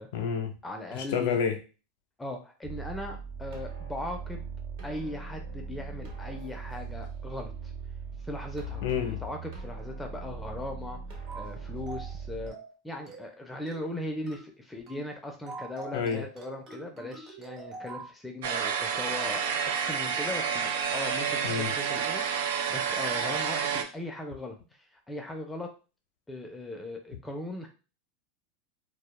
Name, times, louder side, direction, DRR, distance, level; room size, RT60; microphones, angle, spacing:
voice 1, 0.1-0.5 0.9-1.6 8.8-9.2 15.9-16.2 21.4-21.7, left 7 dB, 70° left, 7 dB, 0.5 m, -29 dB
voice 2, 0.6-1.4 2.2-4.4 4.8-7.7 8.2-12.6 12.8-25.7 26.3-27.7, left 1 dB, 10° left, 3 dB, 0.4 m, -39 dB
sound 1, 2.6-12.5, right 4 dB, 60° right, 1.0 m, -39 dB
sound 2, 11.3-11.5 11.9-12.1 12.5-12.8 13.1-13.3 13.7-13.9 14.3-14.5 14.9-15.1 15.5-18.1, right 3 dB, 40° right, 0.8 m, -44 dB
sound 3, 18.4-23.8, right 7 dB, 80° right, 0.3 m, -29 dB
2.1 x 2.0 x 3.0 m, 0.33 s
supercardioid pair, 140°, 0 cm